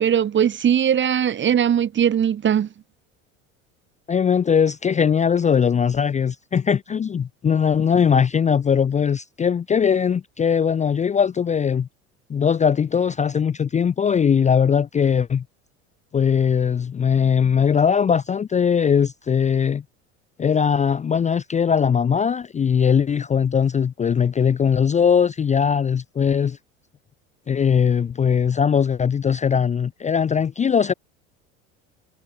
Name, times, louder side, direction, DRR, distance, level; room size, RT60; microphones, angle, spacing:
voice 1, 0.0-2.7, right 9 dB, 30° right, 1.1 m, -19 dB
voice 2, 4.1-11.9 12.3-15.4 16.1-19.8 20.4-26.6 27.5-30.9, left 7 dB, 20° left, 0.5 m, -20 dB
hypercardioid pair, 80°, 37 cm